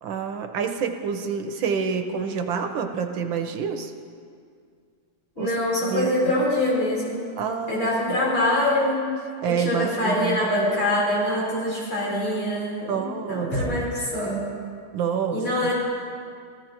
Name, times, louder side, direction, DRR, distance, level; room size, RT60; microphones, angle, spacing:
voice 1, 0.0-3.9 5.4-5.5 5.9-6.1 7.4-8.2 9.4-10.4 12.9-13.9 14.9-15.7, right 6 dB, 70° right, 6 dB, 1.4 m, -28 dB
voice 2, 5.4-7.3 7.7-9.1 9.5-14.5 15.3-15.7, left 1 dB, 70° left, -7 dB, 4.7 m, -24 dB
17.0 x 14.0 x 2.9 m, 2.1 s
omnidirectional pair, 2.4 m